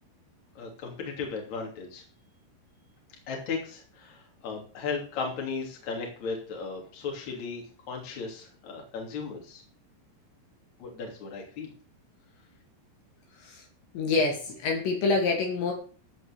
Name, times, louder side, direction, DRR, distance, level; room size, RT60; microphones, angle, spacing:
voice 1, 0.6-2.0 3.3-9.6 10.8-11.7, left 5 dB, 40° left, 0 dB, 3.8 m, -36 dB
voice 2, 13.9-15.7, left 3 dB, 70° left, 0 dB, 4.5 m, -26 dB
15.0 x 5.2 x 6.7 m, 0.41 s
omnidirectional pair, 5.4 m